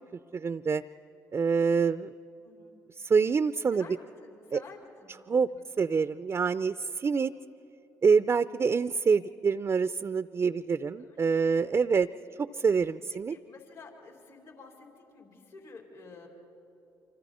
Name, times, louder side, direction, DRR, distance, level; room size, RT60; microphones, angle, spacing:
voice 1, 0.3-0.8 1.3-2.1 3.0-3.9 4.5-4.6 5.3-5.5 5.8-7.3 8.0-12.1 12.4-13.4, right 5 dB, 35° right, 13 dB, 0.4 m, -26 dB
voice 2, 2.4-2.8 3.7-5.1 5.5-5.6 11.0-11.7 13.3-16.3, left 4 dB, 75° left, 0 dB, 4.4 m, -51 dB
28.0 x 25.5 x 4.3 m, 2.8 s
hypercardioid pair, 55°, 8 cm